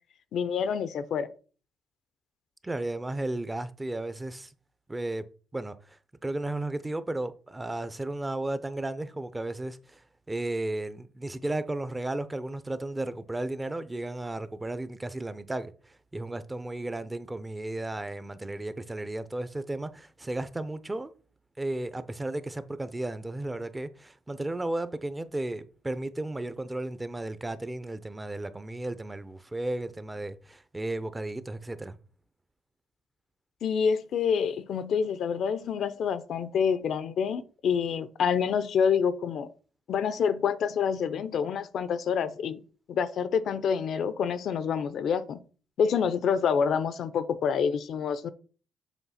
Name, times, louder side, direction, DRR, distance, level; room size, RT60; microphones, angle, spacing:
voice 1, 0.3-1.3 33.6-39.5 39.9-42.6 42.9-45.4 45.8-48.3, left 7 dB, 65° left, 0.6 m, -27 dB
voice 2, 2.6-4.5 4.9-5.3 5.5-10.0 10.3-21.1 21.6-32.0, right 2 dB, 15° right, 0.6 m, -34 dB
7.2 x 3.1 x 5.7 m
cardioid pair, 90°, 0 cm